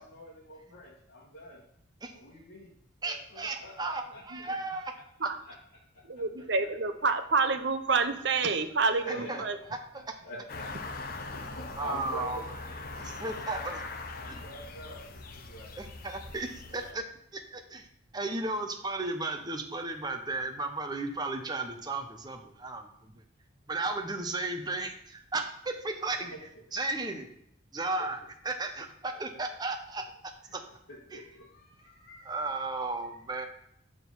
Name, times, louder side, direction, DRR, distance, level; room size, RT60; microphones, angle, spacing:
voice 1, 0.0-1.6 2.1-2.7 3.0-4.2 4.7-4.8 5.4-5.5 5.9-6.0 8.5-8.6 9.0-9.4 10.2-12.4 13.2-13.7 14.1-15.8 16.7-17.0 26.0-26.4 30.9-32.4, equal, 85° left, -5 dB, 1.5 m, -46 dB
voice 2, 3.0-4.9 9.1-9.4 9.7-10.1 11.2-11.3 11.8-12.4 12.9-13.8 14.3-14.4 15.8-17.0 17.3-17.9 18.1-23.1 23.7-27.3 27.7-30.6 31.1-31.2 32.2-33.5, right 2 dB, 20° right, 5 dB, 0.7 m, -35 dB
voice 3, 6.1-9.6, right 4 dB, 60° right, 9 dB, 0.7 m, -28 dB
sound 1, 10.5-16.9, left 3 dB, 45° left, 0.8 m, -41 dB
6.5 x 6.1 x 5.4 m, 0.75 s
head